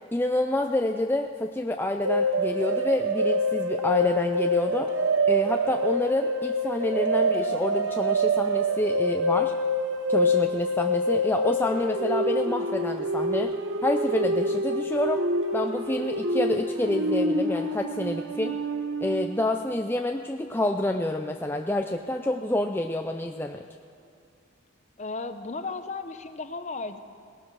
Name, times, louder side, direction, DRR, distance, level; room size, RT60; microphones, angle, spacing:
voice 1, 0.1-4.9 5.3-9.5 10.1-13.5 13.8-15.2 15.5-18.6 19.0-23.6, left 1 dB, 10° left, 4 dB, 0.4 m, -28 dB
sound 1, 2.0-19.5, equal, 70° right, 0.9 m, -26 dB
voice 2, 25.0-27.0, left 3 dB, 35° left, 9 dB, 0.7 m, -35 dB
18.5 x 11.0 x 6.2 m, 2.4 s
head